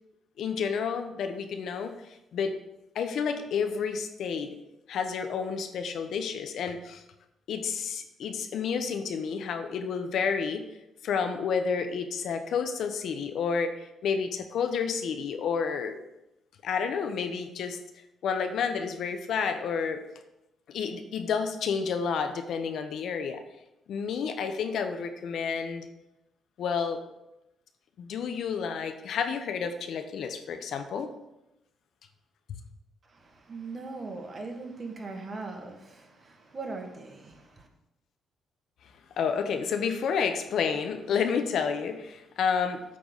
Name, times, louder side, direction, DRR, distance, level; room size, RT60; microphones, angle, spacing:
voice 1, 0.4-1.9 2.3-2.5 2.9-4.5 4.9-7.0 7.5-10.7 11.0-16.0 16.6-17.8 18.2-20.0 20.7-23.4 23.9-25.9 26.6-27.0 28.0-31.1 32.5-32.6 39.2-42.8, left 6 dB, 70° left, 0.9 m, -30 dB
voice 2, 33.1-37.7, right 3 dB, 35° right, 1.7 m, -40 dB
8.6 x 4.0 x 7.1 m
cardioid pair, 90°, 0 cm